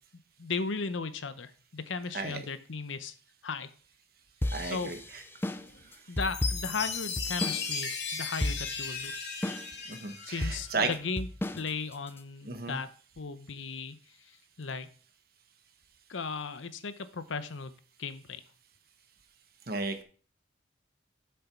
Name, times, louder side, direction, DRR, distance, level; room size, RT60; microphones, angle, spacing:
voice 1, 0.4-3.1 3.4-3.7 4.6-4.9 5.6-9.4 10.3-11.3 11.5-12.9 13.2-14.0 14.6-14.9 16.1-17.7 18.0-18.4, left 4 dB, 85° left, 12 dB, 0.8 m, -36 dB
sound 1, 4.4-7.7 7.9-8.0 8.4-8.9 9.4-9.9 10.4-12.2, left 1 dB, 10° left, 0.4 m, -33 dB
voice 2, 4.5-5.2 9.9-10.9 12.4-12.8 19.7-20.0, right 3 dB, 50° right, 7 dB, 1.3 m, -34 dB
Chime, 6.2-10.8, left 5 dB, 65° left, 2.1 m, -36 dB
7.8 x 6.9 x 4.6 m, 0.41 s
head